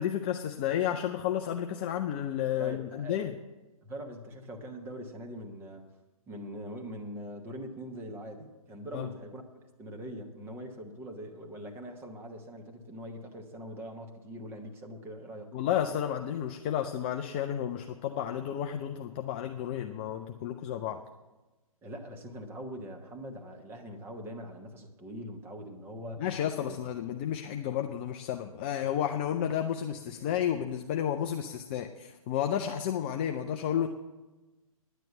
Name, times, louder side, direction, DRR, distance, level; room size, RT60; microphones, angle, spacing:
voice 1, 0.0-3.3 8.9-9.1 15.5-21.0 26.2-33.9, left 10 dB, 15° left, 5 dB, 0.3 m, -32 dB
voice 2, 2.6-3.2 3.8-5.9 6.3-15.5 21.8-26.2 26.7-26.8, equal, 10° right, 3 dB, 1.1 m, -42 dB
10.0 x 9.1 x 7.8 m, 1.1 s
figure-of-eight pair, 130°, 19 cm